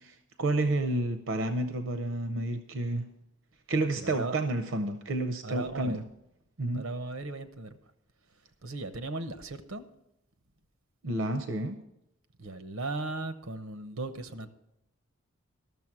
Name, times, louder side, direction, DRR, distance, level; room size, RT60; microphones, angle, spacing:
voice 1, 0.0-3.1 3.7-6.0 6.6-6.8 11.0-11.8, right 2 dB, 70° right, 8 dB, 0.6 m, -30 dB
voice 2, 3.9-4.4 5.4-6.0 6.7-7.8 8.6-9.9 12.4-14.5, right 2 dB, 90° right, 10 dB, 0.9 m, -37 dB
12.5 x 7.0 x 6.0 m, 0.83 s
head